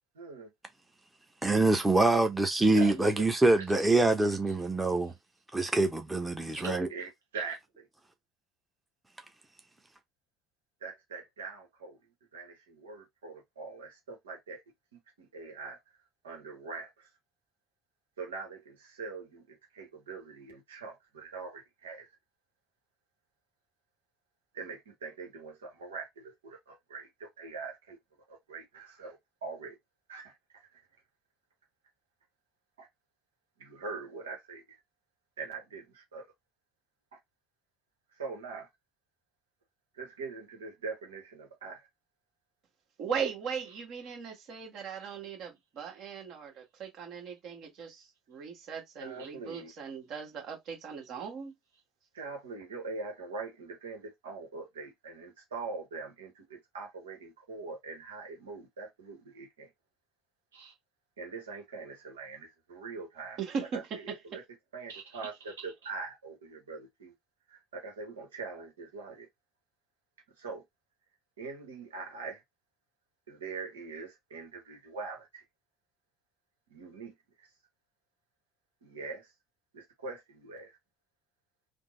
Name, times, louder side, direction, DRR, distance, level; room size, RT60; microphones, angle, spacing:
voice 1, 0.1-0.5 2.7-3.8 5.1-5.2 6.5-7.9 10.8-12.0 12.3-14.6 15.2-15.8 16.2-17.1 18.2-22.1 24.5-28.0 28.3-29.8 30.1-30.8 32.8-32.9 33.6-34.8 35.4-36.2 37.1-37.2 38.1-38.7 39.9-41.9 49.0-49.7 52.1-59.7 60.5-60.7 61.2-64.4 64.7-67.1 67.5-69.3 70.4-70.6 71.4-72.4 73.3-75.4 76.7-77.5 78.8-79.3 79.7-80.8, right 4 dB, 85° right, 1.0 m, -43 dB
voice 2, 1.4-5.1 5.5-6.9, right 2 dB, 15° right, 0.8 m, -25 dB
voice 3, 43.0-51.5 63.4-64.4, right 6 dB, 60° right, 1.4 m, -38 dB
3.5 x 2.1 x 3.1 m
hypercardioid pair, 65°, 0 cm